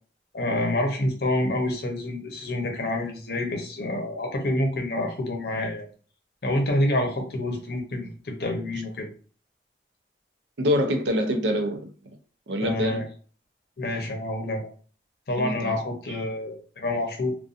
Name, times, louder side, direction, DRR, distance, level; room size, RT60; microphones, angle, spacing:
voice 1, 0.3-5.9 6.4-9.1 12.6-13.1 13.8-14.7 15.3-17.3, left 1 dB, 60° left, 0.6 m, -27 dB
voice 2, 10.6-11.9 12.5-13.0 15.4-15.8, equal, 85° right, 0.5 m, -25 dB
2.4 x 2.2 x 2.5 m
head